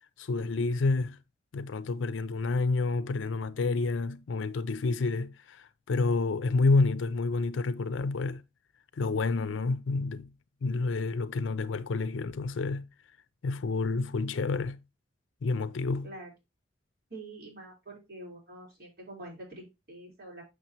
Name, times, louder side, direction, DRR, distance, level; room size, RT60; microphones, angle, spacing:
voice 1, 0.2-1.2 1.5-8.4 9.0-10.3 10.6-12.9 13.4-14.8 15.4-16.1, left 3 dB, 80° left, 0.5 m, -29 dB
voice 2, 17.1-20.4, right 1 dB, 50° right, 3.8 m, -46 dB
6.6 x 6.5 x 2.9 m
head